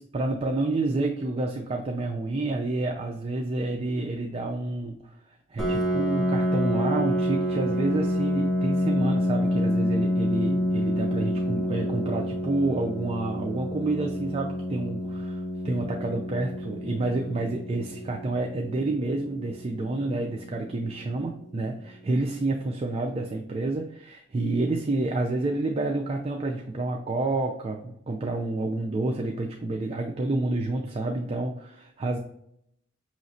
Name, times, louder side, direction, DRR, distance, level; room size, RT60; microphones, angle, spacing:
voice 1, 0.0-32.2, right 2 dB, 35° right, 2 dB, 0.4 m, -29 dB
Piano, 5.6-21.0, equal, ahead, 0.9 m, -28 dB
5.6 x 3.1 x 2.6 m, 0.75 s
head